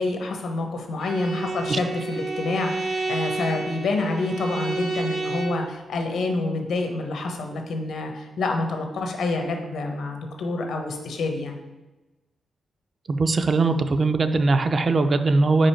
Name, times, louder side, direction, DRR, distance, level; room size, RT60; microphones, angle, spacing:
voice 1, 0.0-11.6, left 3 dB, 80° left, 4 dB, 0.9 m, -27 dB
Bowed string instrument, 1.0-5.7, right 3 dB, 80° right, 1.8 m, -30 dB
voice 2, 13.1-15.7, right 3 dB, 35° right, 9 dB, 0.3 m, -20 dB
5.1 x 4.6 x 4.4 m, 1.1 s
wide cardioid pair, 150°, 0 cm